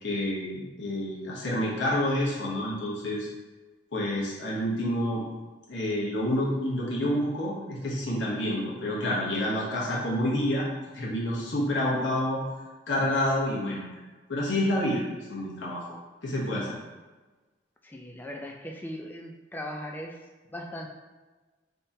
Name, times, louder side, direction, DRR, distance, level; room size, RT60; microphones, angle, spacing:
voice 1, 0.0-3.3 3.9-5.2 5.7-10.6 10.9-12.4 12.9-13.9 14.3-15.0 15.3-15.8 16.2-16.7, left 1 dB, 80° left, -5 dB, 0.9 m, -28 dB
voice 2, 17.8-20.1 20.5-20.9, left 1 dB, 10° left, 1 dB, 0.3 m, -38 dB
3.5 x 2.8 x 2.7 m, 1.2 s
head